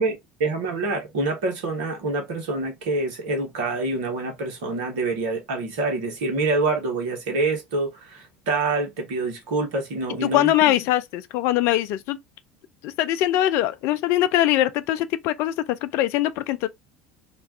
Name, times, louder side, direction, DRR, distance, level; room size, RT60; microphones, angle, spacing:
voice 1, 0.0-10.7, right 3 dB, 65° right, 1.0 m, -26 dB
voice 2, 10.2-12.2 12.8-15.5 15.8-16.7, left 14 dB, 55° left, 0.3 m, -22 dB
2.4 x 2.2 x 3.3 m
figure-of-eight pair, 65°, 5 cm